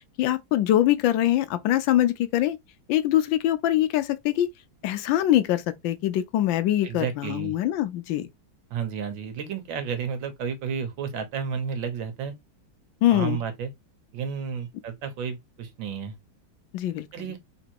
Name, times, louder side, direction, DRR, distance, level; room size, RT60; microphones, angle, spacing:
voice 1, 0.2-2.6 2.9-4.5 4.8-8.3 13.0-13.4 16.7-17.1, left 13 dB, 85° left, 1.4 m, -23 dB
voice 2, 6.8-7.6 8.7-12.3 13.1-13.7 14.1-16.2 17.1-17.4, right 7 dB, 90° right, 1.8 m, -32 dB
4.0 x 2.9 x 4.5 m
omnidirectional pair, 2.0 m